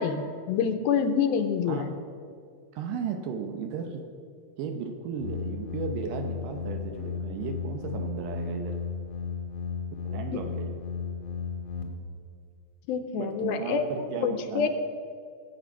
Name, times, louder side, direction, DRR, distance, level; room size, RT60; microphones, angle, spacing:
voice 1, 0.0-1.9 12.9-14.7, left 6 dB, 80° left, 8 dB, 2.5 m, -27 dB
voice 2, 2.7-4.0 4.6-8.8 10.0-10.8 13.2-14.7, right 6 dB, 75° right, 5 dB, 2.2 m, -35 dB
sound 1, 5.2-11.8, left 6 dB, 60° left, 1.4 m, -34 dB
19.5 x 7.8 x 5.6 m, 2.3 s
omnidirectional pair, 4.4 m